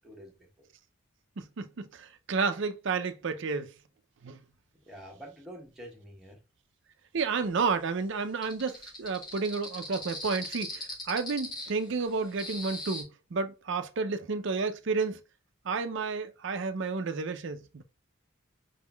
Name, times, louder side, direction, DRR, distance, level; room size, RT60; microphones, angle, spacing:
voice 1, 0.0-0.7 4.9-6.4, equal, ahead, 1.2 m, -47 dB
voice 2, 1.4-3.7 4.2-4.4 7.1-15.2 15.7-17.8, right 4 dB, 60° right, 0.5 m, -31 dB
sound 1, 8.4-13.0, left 1 dB, 20° left, 1.3 m, -39 dB
5.2 x 3.6 x 2.3 m
head